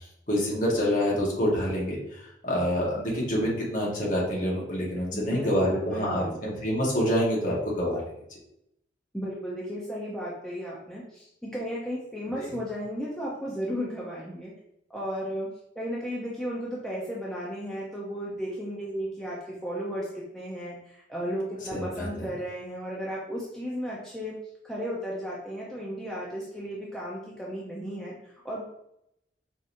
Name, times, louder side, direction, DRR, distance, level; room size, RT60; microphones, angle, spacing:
voice 1, 0.3-2.0 2.4-8.0 12.4-12.5 21.7-22.1, equal, 45° left, -4 dB, 1.2 m, -26 dB
voice 2, 5.1-6.4 9.1-14.5 14.9-15.5 15.7-19.4 19.6-24.3 24.6-28.6, equal, 5° left, -6 dB, 0.6 m, -34 dB
4.9 x 2.9 x 2.6 m, 0.78 s
head